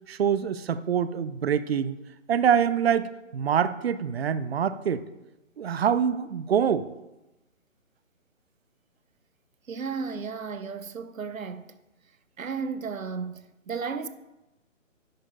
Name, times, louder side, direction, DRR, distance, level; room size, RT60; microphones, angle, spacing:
voice 1, 0.1-2.0 2.3-5.0 5.6-6.9, right 8 dB, 50° right, 0.5 m, -25 dB
voice 2, 9.7-11.7 12.4-14.1, right 5 dB, 90° right, 0.8 m, -34 dB
10.0 x 4.4 x 5.7 m
figure-of-eight pair, 145°, 39 cm